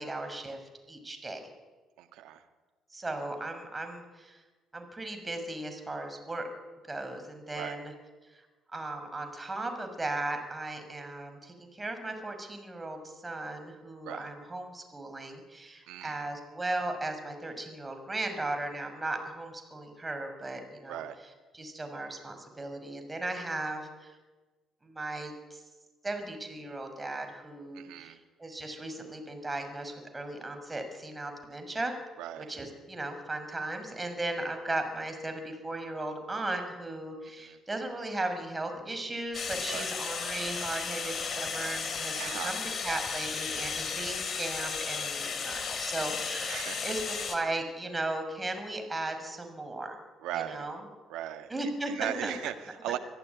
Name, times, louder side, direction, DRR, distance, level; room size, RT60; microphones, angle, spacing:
voice 1, 0.0-1.4 2.9-4.4 4.7-6.5 6.9-7.9 8.3-8.4 8.7-21.0 21.5-24.2 24.8-25.6 26.0-31.9 32.4-50.0 50.3-50.8 51.5-52.3, right 2 dB, 20° right, 6 dB, 6.4 m, -36 dB
voice 2, 2.0-2.4 7.5-7.8 14.0-14.3 15.9-16.3 20.9-21.2 27.7-28.2 32.2-32.4 37.4-37.6 39.7-39.9 42.1-42.7 46.5-46.9 50.2-50.7 51.1-51.5 51.9-53.0, right 12 dB, 70° right, 7 dB, 1.8 m, -38 dB
sound 1, 39.3-47.4, left 5 dB, 45° left, 3.6 m, -34 dB
25.0 x 15.0 x 9.7 m, 1.3 s
hypercardioid pair, 50°, 0 cm